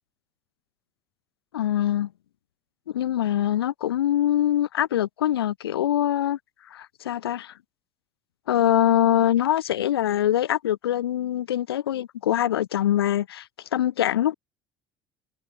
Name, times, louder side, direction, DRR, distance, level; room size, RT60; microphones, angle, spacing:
voice 1, 1.5-2.1 2.9-6.4 6.7-7.5 8.5-13.5 13.7-14.3, left 12 dB, 85° left, 0.8 m, -23 dB
hypercardioid pair, 65°, 13 cm